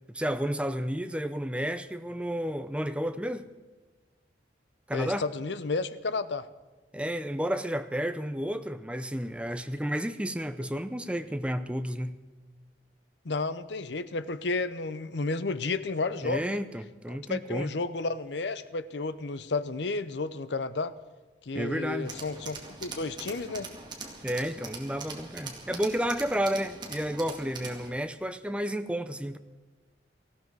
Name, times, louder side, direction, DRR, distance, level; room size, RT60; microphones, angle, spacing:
voice 1, 0.1-3.5 4.9-5.2 6.9-12.2 16.2-17.7 21.5-22.1 24.2-29.4, equal, 5° right, 10 dB, 0.6 m, -31 dB
voice 2, 4.9-6.5 13.2-16.6 17.3-20.9 21.4-23.7, left 3 dB, 70° left, 15 dB, 0.7 m, -32 dB
Tools, 22.0-27.9, right 3 dB, 25° right, 2.2 m, -42 dB
18.5 x 15.5 x 4.7 m, 1.3 s
head